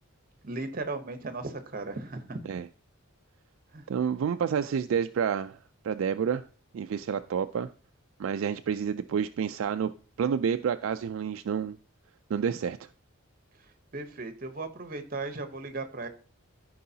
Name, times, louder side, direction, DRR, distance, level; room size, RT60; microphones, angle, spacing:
voice 1, 0.4-2.5 3.7-3.8 13.9-16.1, right 3 dB, 40° right, 9 dB, 0.9 m, -36 dB
voice 2, 3.9-5.6 5.8-6.4 6.7-7.7 8.2-9.9 10.2-11.8 12.3-12.8, right 7 dB, 70° right, 9 dB, 0.3 m, -29 dB
14.0 x 4.7 x 2.8 m, 0.39 s
head